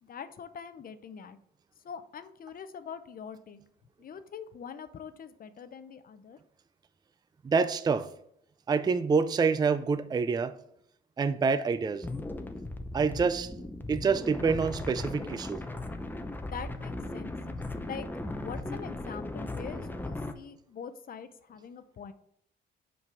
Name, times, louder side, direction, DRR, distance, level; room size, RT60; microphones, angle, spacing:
voice 1, 0.0-1.4 1.8-3.6 4.0-6.4 16.5-17.4 17.8-18.1 18.4-22.1, left 7 dB, 45° left, 0.6 m, -43 dB
voice 2, 7.4-8.1 8.7-10.5 11.2-12.1 12.9-13.5 13.9-15.6, right 5 dB, 20° right, 0.4 m, -27 dB
sound 1, 12.0-20.3, left 2 dB, 10° left, 0.7 m, -37 dB
5.7 x 5.4 x 4.6 m
cardioid pair, 90°, 20 cm